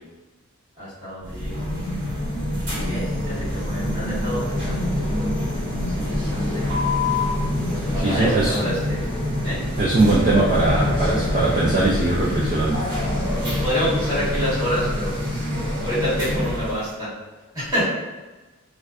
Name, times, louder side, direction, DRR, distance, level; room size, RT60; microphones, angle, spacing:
voice 1, 0.7-1.6 2.7-5.2 5.9-6.6 7.7-9.1 9.4-9.6 13.1-17.1 17.5-17.9, equal, 20° right, -12 dB, 1.3 m, -28 dB
sound 1, 1.2-16.8, left 1 dB, 55° right, 1.3 m, -25 dB
voice 2, 8.0-8.6 9.8-12.9, right 2 dB, 35° right, -6 dB, 0.3 m, -20 dB
2.5 x 2.2 x 2.3 m, 1.2 s
head